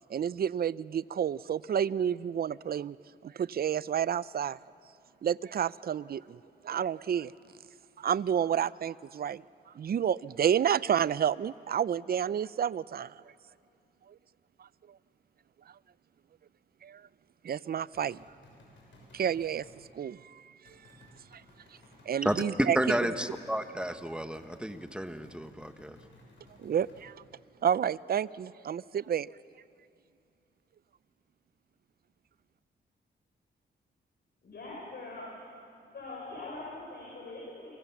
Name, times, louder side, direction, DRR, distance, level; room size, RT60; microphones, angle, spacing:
voice 1, 0.1-3.0 3.2-4.6 5.2-7.3 8.0-9.4 9.7-13.1 16.8-17.0 17.4-18.2 19.1-19.6 19.9-20.8 21.3-21.4 22.1-23.2 26.6-27.1 27.6-29.3, right 8 dB, 55° right, 19 dB, 0.5 m, -30 dB
sound 1, 17.9-19.8 20.7-22.1 23.3-27.1, left 1 dB, 85° left, 7.0 m, -58 dB
voice 2, 22.2-26.0, right 1 dB, 5° right, 8 dB, 1.3 m, -31 dB
voice 3, 34.4-35.3 35.9-37.7, left 2 dB, 60° left, -3 dB, 6.6 m, -42 dB
29.5 x 23.5 x 7.3 m, 2.4 s
cardioid pair, 90°, 19 cm